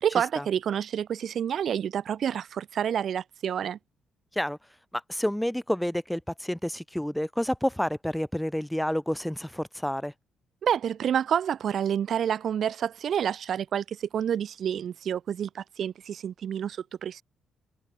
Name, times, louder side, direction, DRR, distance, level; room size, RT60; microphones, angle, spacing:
voice 1, 0.0-3.8 10.6-17.2, right 9 dB, 60° right, 1.3 m, -28 dB
voice 2, 5.1-10.1, equal, 5° left, 2.0 m, -29 dB
cardioid pair, 90°, 0 cm